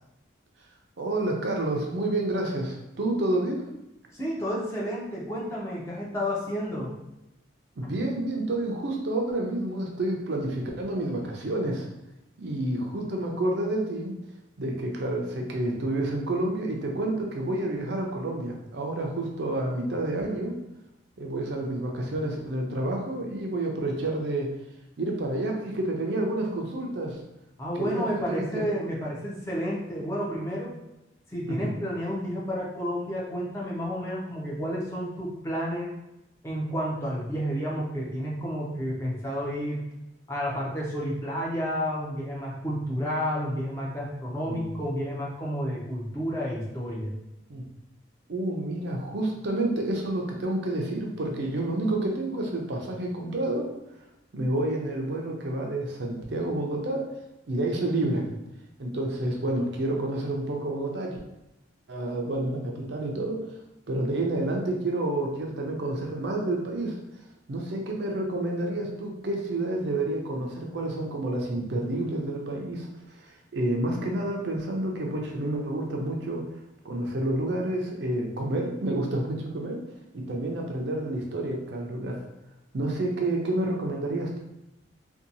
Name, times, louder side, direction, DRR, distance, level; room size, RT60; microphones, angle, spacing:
voice 1, 1.0-3.7 7.8-11.9 12.4-14.1 14.6-20.6 21.2-24.5 25.0-27.2 27.7-28.6 31.5-31.7 44.5-44.7 47.5-47.6 48.3-53.6 54.3-57.1 57.5-58.3 58.8-61.2 61.9-63.5 63.9-67.0 67.5-76.4 76.8-79.8 80.1-82.2 82.7-84.4, right 1 dB, 65° right, 0 dB, 0.5 m, -29 dB
voice 2, 4.1-6.9 27.6-30.7 31.3-35.9 36.4-39.8 40.3-47.1, equal, 15° left, -5 dB, 0.5 m, -31 dB
2.7 x 2.2 x 2.6 m, 0.90 s
head